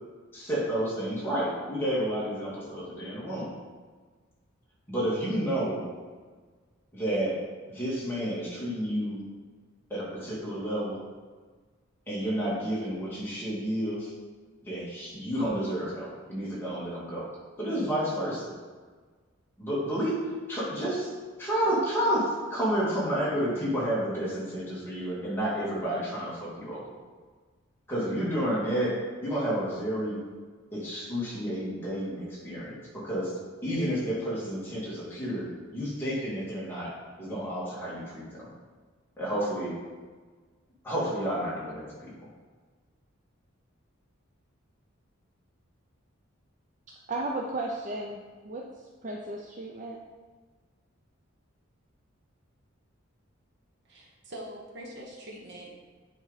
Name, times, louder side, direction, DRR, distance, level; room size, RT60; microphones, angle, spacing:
voice 1, 0.3-3.5 4.9-5.8 6.9-9.2 9.9-11.0 12.1-14.1 14.6-17.3 17.6-18.5 19.6-21.1 21.4-26.9 27.9-30.2 30.7-36.9 37.2-38.5 39.2-39.8 40.8-42.1, equal, 10° left, -8 dB, 2.2 m, -30 dB
voice 2, 47.1-50.0, right 2 dB, 35° right, -1 dB, 0.5 m, -35 dB
voice 3, 53.8-55.7, right 1 dB, 55° right, -1 dB, 1.2 m, -43 dB
8.9 x 4.4 x 4.1 m, 1.5 s
head